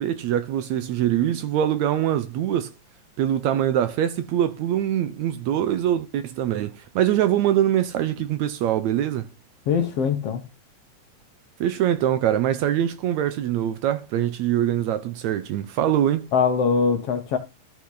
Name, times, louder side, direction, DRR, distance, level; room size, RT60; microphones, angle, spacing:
voice 1, 0.0-2.7 3.2-9.3 11.6-16.3, right 11 dB, 75° right, 1.9 m, -23 dB
voice 2, 9.7-10.4 16.3-17.4, left 6 dB, 65° left, 1.7 m, -22 dB
13.5 x 5.9 x 3.9 m
omnidirectional pair, 3.7 m